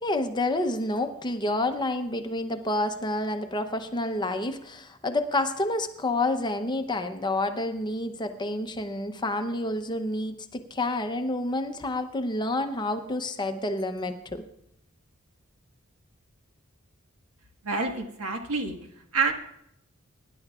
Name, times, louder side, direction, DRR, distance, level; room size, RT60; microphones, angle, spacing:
voice 1, 0.0-14.4, left 2 dB, 20° left, 7 dB, 0.8 m, -29 dB
voice 2, 17.6-18.8 19.1-19.3, right 4 dB, 80° right, 3 dB, 1.5 m, -27 dB
23.0 x 11.0 x 2.4 m, 0.77 s
head